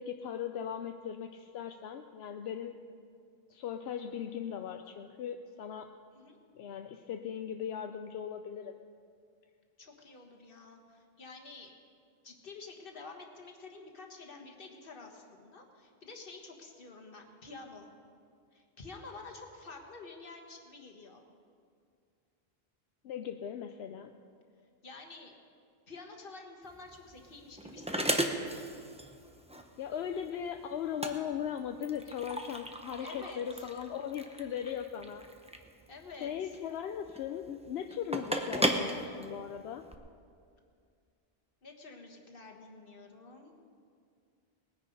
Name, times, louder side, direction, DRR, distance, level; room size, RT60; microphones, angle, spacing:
voice 1, 0.0-2.8 3.5-5.9 6.5-8.8 23.0-24.1 29.8-35.2 36.2-39.9, left 8 dB, 85° left, 6 dB, 0.8 m, -38 dB
voice 2, 9.8-11.7 12.2-17.9 18.5-21.2 24.8-25.3 25.9-28.4 33.0-33.7 35.9-36.3 41.6-43.5, left 3 dB, 60° left, 2 dB, 1.7 m, -49 dB
sound 1, 26.6-39.9, right 1 dB, 5° right, 0.7 m, -36 dB
20.0 x 9.7 x 5.2 m, 2.3 s
omnidirectional pair, 1.0 m